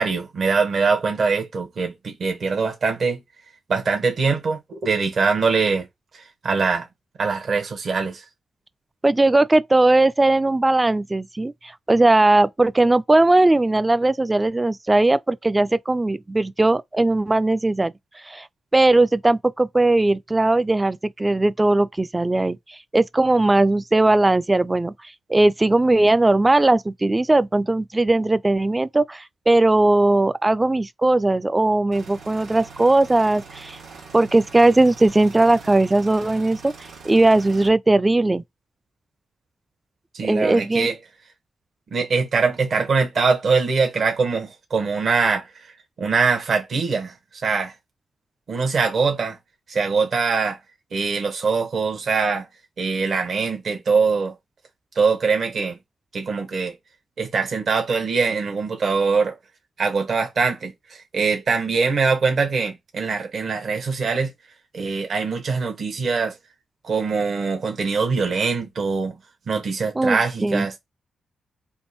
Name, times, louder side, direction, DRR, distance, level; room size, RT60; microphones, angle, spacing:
voice 1, 0.0-3.2 3.7-5.9 6.1-6.9 7.2-8.2 40.2-41.0 41.9-45.4 46.0-47.1 47.4-47.7 48.5-49.4 49.7-50.6 50.9-52.5 52.8-54.3 54.9-55.8 56.1-56.7 57.2-59.4 59.8-64.3 64.7-66.3 66.8-69.2 69.5-70.8, right 4 dB, 65° right, 1.0 m, -22 dB
voice 2, 9.0-11.5 11.9-17.9 18.3-18.5 18.7-22.6 22.9-24.9 25.3-33.8 34.1-36.7 37.0-38.4 40.2-40.9 70.0-70.7, right 2 dB, 20° right, 0.3 m, -18 dB
sound 1, 31.9-37.7, right 4 dB, 90° right, 1.3 m, -43 dB
3.6 x 2.5 x 4.0 m
cardioid pair, 60°, 0 cm